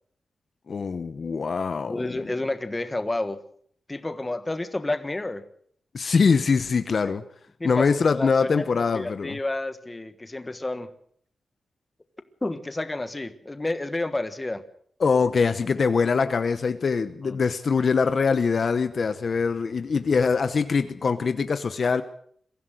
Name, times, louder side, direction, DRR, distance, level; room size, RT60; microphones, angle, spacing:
voice 1, 0.7-2.0 5.9-7.2 7.6-9.4 15.0-22.0, left 5 dB, 45° left, 0.9 m, -23 dB
voice 2, 1.9-3.4 3.9-5.4 7.0-7.2 7.6-8.3 8.6-10.9 12.4-14.6 17.2-17.4, left 2 dB, 15° left, 1.3 m, -30 dB
23.0 x 15.5 x 7.7 m
wide cardioid pair, 180°, 0 cm